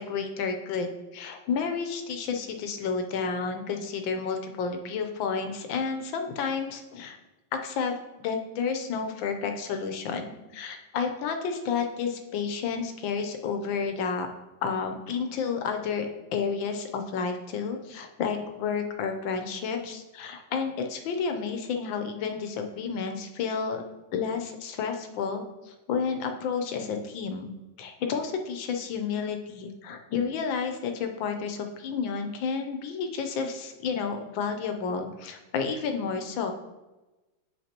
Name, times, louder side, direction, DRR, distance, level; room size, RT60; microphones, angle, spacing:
voice 1, 0.0-7.2 7.5-14.3 14.6-23.8 24.1-27.5 27.8-36.5, left 5 dB, 80° left, 5 dB, 1.5 m, -31 dB
8.4 x 6.3 x 2.9 m, 1.1 s
omnidirectional pair, 2.1 m